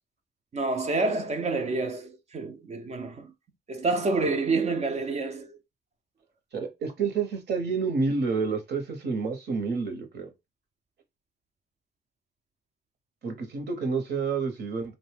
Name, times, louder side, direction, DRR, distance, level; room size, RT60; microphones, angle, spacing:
voice 1, 0.5-3.3 3.7-5.6, right 3 dB, 35° right, 0.5 m, -28 dB
voice 2, 6.5-10.3 13.2-14.9, right 4 dB, 55° right, 0.9 m, -29 dB
2.6 x 2.1 x 3.2 m
cardioid pair, 90°, 20 cm